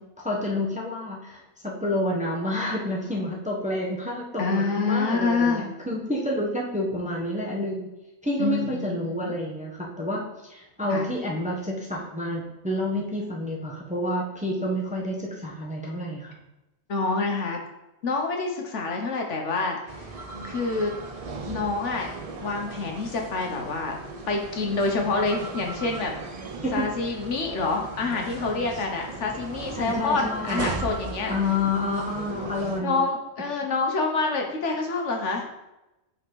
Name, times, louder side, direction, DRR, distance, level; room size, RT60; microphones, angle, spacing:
voice 1, 0.2-7.9 8.2-10.2 10.5-16.4 26.6-26.9 29.8-30.7 31.3-33.0, left 1 dB, 5° right, -3 dB, 0.9 m, -29 dB
voice 2, 4.4-5.7 8.4-9.3 10.9-11.1 16.9-17.6 18.0-20.1 20.4-20.9 21.5-22.1 22.4-24.0 24.3-26.3 26.7-31.4 32.8-35.5, left 3 dB, 60° left, 2 dB, 1.2 m, -27 dB
sound 1, 19.9-32.8, right 3 dB, 60° right, 0.3 m, -37 dB
5.5 x 4.3 x 4.6 m, 0.96 s
omnidirectional pair, 1.4 m